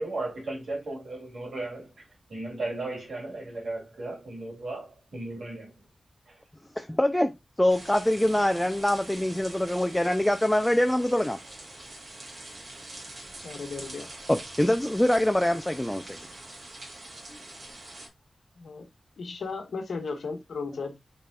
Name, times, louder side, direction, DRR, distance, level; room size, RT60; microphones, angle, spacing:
voice 1, 0.0-1.9 2.3-5.7, right 2 dB, 75° right, 2.7 m, -35 dB
voice 2, 6.8-7.3 7.6-11.4 14.3-16.2, left 1 dB, 10° left, 0.4 m, -24 dB
sound 1, 7.7-18.1, right 2 dB, 50° right, 1.9 m, -44 dB
voice 3, 13.4-14.1 18.6-18.9 19.2-21.0, left 4 dB, 90° left, 1.1 m, -35 dB
5.2 x 4.1 x 2.3 m
wide cardioid pair, 120°, 0 cm